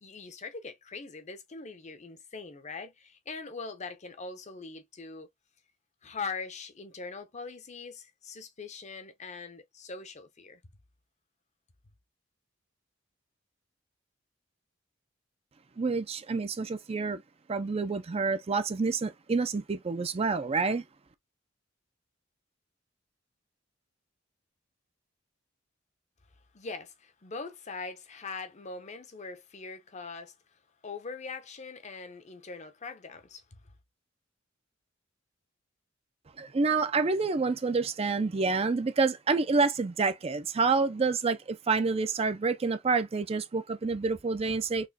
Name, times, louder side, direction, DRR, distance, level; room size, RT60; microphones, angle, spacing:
voice 1, 0.0-5.3 6.0-10.6 26.5-30.3 30.8-33.6, left 4 dB, 35° left, 0.7 m, -42 dB
voice 2, 15.8-17.2 17.5-20.8 36.4-44.9, right 4 dB, 30° right, 0.4 m, -28 dB
4.2 x 2.9 x 2.8 m
head